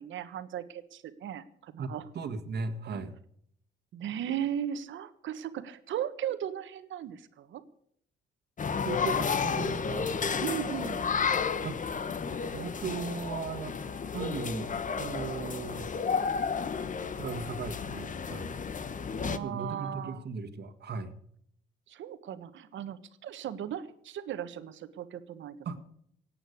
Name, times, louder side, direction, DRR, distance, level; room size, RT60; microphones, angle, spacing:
voice 1, 0.0-2.0 2.9-3.0 3.9-7.6 10.4-11.1 19.2-20.2 21.9-25.7, right 10 dB, 75° right, 12 dB, 1.4 m, -37 dB
voice 2, 1.8-3.1 8.8-10.1 11.6-11.9 12.5-14.7 15.0-15.9 16.8-18.5 19.4-21.1 25.7-25.8, right 5 dB, 55° right, 9 dB, 1.8 m, -37 dB
sound 1, 8.6-19.4, left 6 dB, 40° left, 1.2 m, -32 dB
17.5 x 8.7 x 8.5 m, 0.68 s
cardioid pair, 90°, 20 cm